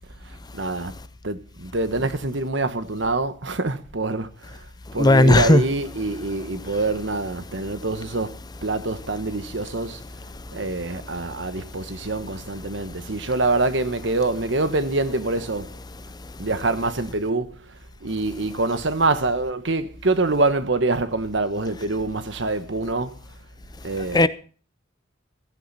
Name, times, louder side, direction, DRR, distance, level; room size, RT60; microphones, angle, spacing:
voice 1, 0.3-1.0 1.2-4.7 4.9-10.0 10.5-15.7 16.4-23.2 23.8-24.3, right 2 dB, 65° right, 1.2 m, -25 dB
voice 2, 5.0-5.6 24.1-24.3, left 2 dB, 20° left, 0.6 m, -14 dB
16.0 x 14.0 x 4.2 m
head